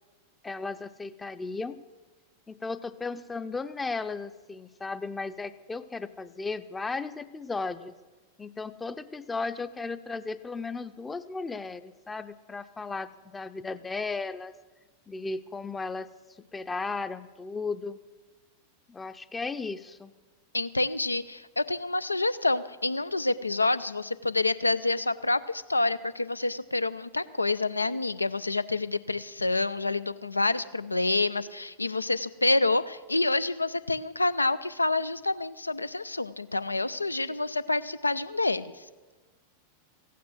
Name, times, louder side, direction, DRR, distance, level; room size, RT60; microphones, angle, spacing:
voice 1, 0.4-1.8 2.5-7.9 8.4-14.5 15.1-16.1 16.5-18.0 18.9-20.1, left 4 dB, 15° left, 12 dB, 0.6 m, -35 dB
voice 2, 20.5-38.7, left 2 dB, 80° left, 15 dB, 0.5 m, -28 dB
15.5 x 9.3 x 7.8 m, 1.3 s
figure-of-eight pair, 90°, 0 cm